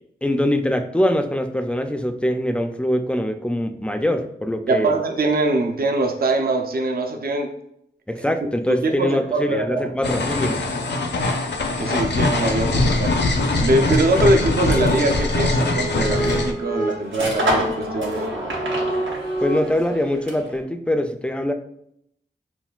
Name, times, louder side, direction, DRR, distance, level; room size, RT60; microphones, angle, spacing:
voice 1, 0.2-4.9 8.1-10.7 19.4-21.5, left 1 dB, 5° left, 7 dB, 0.3 m, -23 dB
voice 2, 4.7-7.5 8.2-8.3 8.7-9.9 11.8-13.2 13.6-18.3, right 2 dB, 55° right, 4 dB, 0.5 m, -22 dB
sound 1, 10.0-16.5, left 2 dB, 65° left, 0.5 m, -22 dB
sound 2, 13.8-20.6, right 1 dB, 90° right, 0.8 m, -30 dB
sound 3, 14.3-19.6, right 1 dB, 85° left, 1.0 m, -29 dB
5.7 x 2.3 x 2.3 m, 0.74 s
wide cardioid pair, 70°, 19 cm